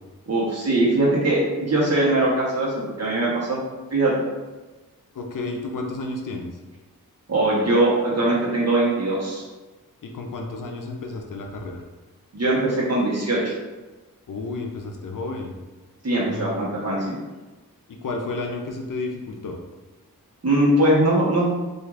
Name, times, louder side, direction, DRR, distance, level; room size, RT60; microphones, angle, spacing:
voice 1, 0.3-3.6 3.9-4.1 7.3-9.4 12.3-13.5 16.0-17.0 20.4-21.5, right 1 dB, 45° right, -6 dB, 1.0 m, -21 dB
voice 2, 5.1-6.5 10.0-11.8 14.3-15.6 16.3-16.8 17.9-19.6, left 3 dB, 65° left, 2 dB, 0.5 m, -31 dB
4.4 x 2.5 x 2.4 m, 1.2 s
cardioid pair, 50°, 35 cm